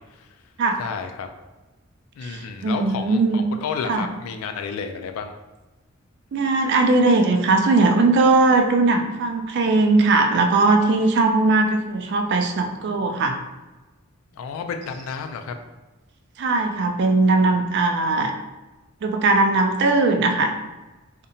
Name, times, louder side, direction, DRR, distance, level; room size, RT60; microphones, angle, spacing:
voice 1, 0.8-1.3 2.2-5.3 14.3-15.5, left 6 dB, 85° left, 9 dB, 0.3 m, -31 dB
voice 2, 2.2-3.4 3.9-4.1 6.3-13.4 16.4-18.3 19.0-20.5, right 3 dB, 55° right, 4 dB, 0.3 m, -19 dB
2.7 x 2.1 x 2.6 m, 1.1 s
head